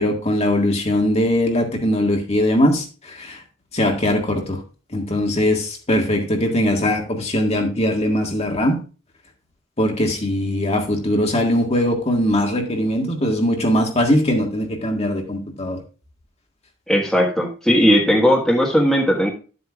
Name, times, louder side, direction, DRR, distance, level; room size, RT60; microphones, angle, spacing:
voice 1, 0.0-3.4 3.7-4.6 4.9-8.8 9.8-15.8, left 1 dB, 30° left, 1 dB, 1.8 m, -20 dB
voice 2, 16.9-19.3, equal, ahead, -2 dB, 1.5 m, -17 dB
12.0 x 8.1 x 2.4 m, 0.35 s
head